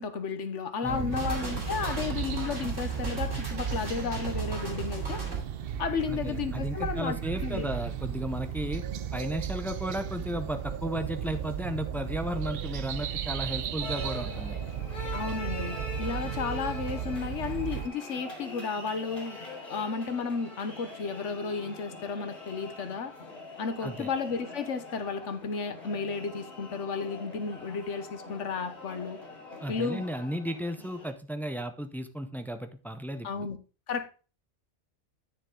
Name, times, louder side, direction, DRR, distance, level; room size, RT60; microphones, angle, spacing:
voice 1, 0.0-5.2 5.8-7.7 15.1-19.4 19.7-23.1 23.6-29.2 29.7-30.0 33.2-33.6 33.9-34.1, left 5 dB, 70° left, 1.3 m, -33 dB
voice 2, 0.8-1.3 6.1-8.8 9.1-14.6 23.8-24.1 29.6-33.5, equal, ahead, 0.5 m, -34 dB
sound 1, 0.8-17.9, right 9 dB, 60° right, 0.7 m, -35 dB
sound 2, 1.1-5.4, right 3 dB, 80° right, 3.3 m, -37 dB
sound 3, 13.8-31.1, left 2 dB, 45° left, 3.2 m, -44 dB
9.9 x 6.6 x 3.8 m
omnidirectional pair, 1.3 m